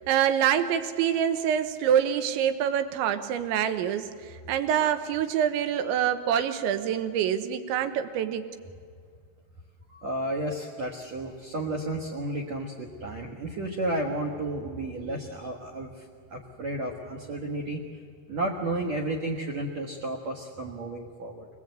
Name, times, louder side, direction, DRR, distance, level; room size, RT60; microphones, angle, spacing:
voice 1, 0.0-4.1 4.5-8.5, right 9 dB, 80° right, 8 dB, 3.3 m, -26 dB
voice 2, 9.9-17.8 18.3-21.5, right 1 dB, 65° right, 3 dB, 1.8 m, -32 dB
26.5 x 19.5 x 8.1 m, 2.1 s
omnidirectional pair, 5.4 m